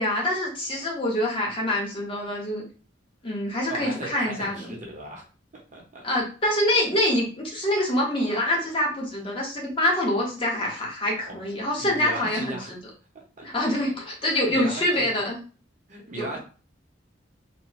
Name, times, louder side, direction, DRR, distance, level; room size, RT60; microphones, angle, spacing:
voice 1, 0.0-2.6 3.2-4.7 6.0-12.8 13.4-15.4 16.1-16.4, left 1 dB, 30° left, -3 dB, 0.9 m, -25 dB
voice 2, 3.7-5.3 5.5-6.0 11.3-11.4 11.8-12.7 13.4-13.5 14.3-15.2 15.9-16.4, right 1 dB, 40° right, 0 dB, 0.7 m, -37 dB
3.0 x 2.1 x 3.0 m, 0.37 s
head